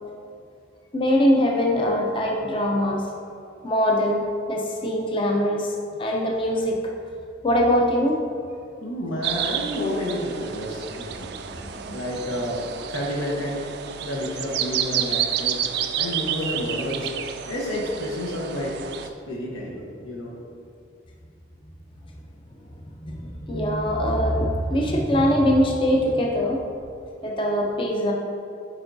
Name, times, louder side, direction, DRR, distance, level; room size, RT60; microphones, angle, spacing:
voice 1, 0.9-3.0 3.6-6.8 7.4-8.2 11.6-11.9 23.0-26.6 27.2-28.1, equal, 25° left, 0 dB, 0.5 m, -22 dB
voice 2, 8.8-11.3 11.9-12.6 12.9-13.7 14.0-15.6 16.0-17.1 17.5-18.8 19.3-20.3, left 1 dB, 80° left, -3 dB, 1.0 m, -30 dB
sound 1, 9.2-19.1, right 9 dB, 55° right, 0.3 m, -30 dB
9.0 x 4.4 x 2.6 m, 2.4 s
head